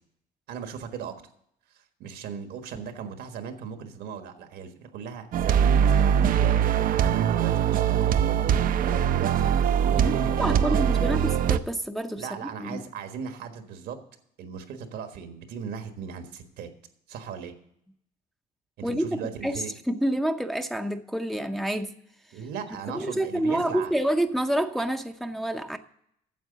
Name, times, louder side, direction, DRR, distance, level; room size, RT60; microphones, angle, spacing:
voice 1, 0.5-1.2 1.7-8.2 8.5-9.5 9.8-11.2 12.1-14.0 14.4-16.7 17.1-17.6 18.8-19.7 22.3-23.9, right 7 dB, 75° right, 7 dB, 1.4 m, -37 dB
sound 1, 5.3-11.6, right 8 dB, 55° right, 0.5 m, -22 dB
voice 2, 10.0-12.8 18.8-19.0 19.4-21.9 22.9-25.8, right 1 dB, ahead, 6 dB, 0.6 m, -28 dB
9.3 x 7.0 x 6.7 m, 0.72 s
cardioid pair, 110°, 17 cm